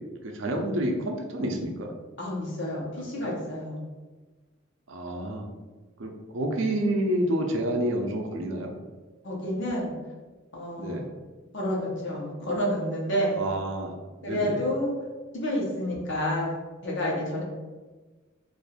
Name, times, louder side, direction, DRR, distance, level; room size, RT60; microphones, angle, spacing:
voice 1, 0.2-1.9 3.2-3.3 4.9-5.5 6.0-8.7 10.8-11.1 13.3-14.7, right 1 dB, 70° right, 2 dB, 0.5 m, -29 dB
voice 2, 2.2-3.8 9.2-9.9 10.5-11.0 11.5-13.4 14.2-14.9 15.3-16.5 16.8-17.4, equal, 60° left, -3 dB, 0.9 m, -29 dB
2.6 x 2.5 x 4.1 m, 1.3 s
head